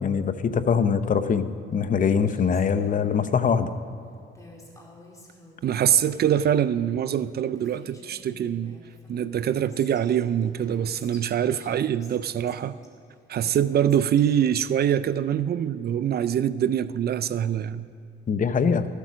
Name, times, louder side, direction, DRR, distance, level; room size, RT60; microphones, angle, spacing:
voice 1, 0.0-3.7 18.3-18.9, left 6 dB, 40° left, 11 dB, 0.7 m, -23 dB
Female speech woman speaking, 2.3-3.5 4.3-6.7 7.3-7.4 7.5-10.0 10.4-12.9 13.4-14.6, left 2 dB, 15° left, 2.5 m, -51 dB
voice 2, 5.6-8.8 9.1-12.8 13.3-17.9, right 9 dB, 55° right, 15 dB, 0.5 m, -24 dB
14.0 x 8.2 x 6.2 m, 2.6 s
cardioid pair, 90°, 20 cm